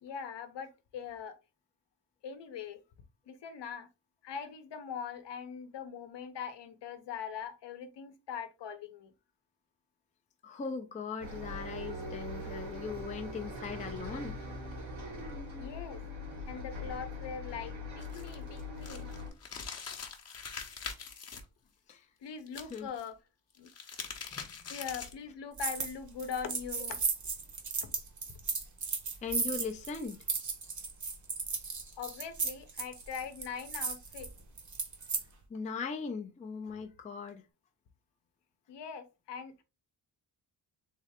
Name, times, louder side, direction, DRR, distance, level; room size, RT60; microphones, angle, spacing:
voice 1, 0.0-1.4 2.2-2.8 3.3-3.9 4.2-9.1 15.6-16.0 16.5-19.1 22.2-23.2 23.6-23.7 24.7-27.0 27.8-27.9 28.3-28.4 32.0-34.3 38.7-39.6, left 7 dB, 65° left, 0.8 m, -42 dB
voice 2, 10.4-14.3 21.9-22.1 22.7-22.9 24.3-24.7 29.2-30.2 35.5-37.4, left 5 dB, 20° left, 0.4 m, -39 dB
Bus, 11.2-19.3, left 1 dB, 85° right, 2.1 m, -41 dB
sound 1, 18.0-21.4 22.5-23.0 23.5-25.3, left 6 dB, 35° left, 0.8 m, -43 dB
sound 2, 25.6-25.9 26.2-35.2, right 5 dB, 40° right, 0.9 m, -35 dB
3.7 x 3.2 x 3.5 m
wide cardioid pair, 180°, 46 cm